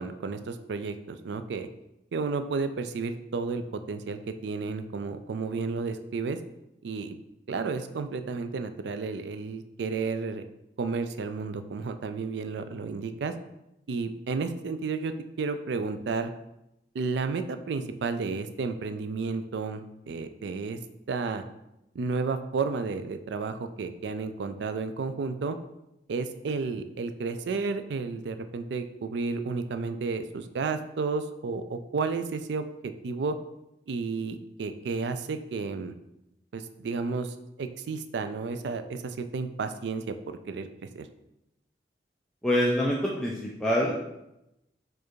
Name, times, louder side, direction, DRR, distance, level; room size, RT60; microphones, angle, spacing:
voice 1, 0.0-1.7 2.1-6.4 6.8-7.2 7.5-10.4 10.8-13.3 13.9-15.1 15.4-16.3 16.9-19.8 20.1-20.8 21.1-21.4 21.9-25.6 26.1-32.6 33.0-33.4 33.9-35.9 36.5-40.2 40.5-40.7 41.0-41.1, right 4 dB, 85° right, 9 dB, 0.4 m, -32 dB
voice 2, 42.4-44.0, equal, 5° left, -5 dB, 0.4 m, -25 dB
4.7 x 2.5 x 4.5 m, 0.88 s
head